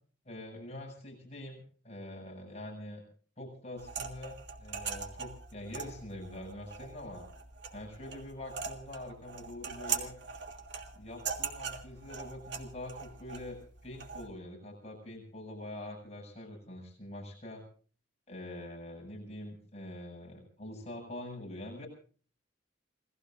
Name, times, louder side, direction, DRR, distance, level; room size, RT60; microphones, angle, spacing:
voice 1, 0.2-3.0 3.4-7.2 7.7-10.1 10.9-17.6 18.3-21.9, left 1 dB, 35° left, 1 dB, 7.6 m, -45 dB
sound 1, 3.8-14.3, right 6 dB, 65° right, 2.7 m, -41 dB
28.5 x 19.5 x 2.6 m, 0.43 s
head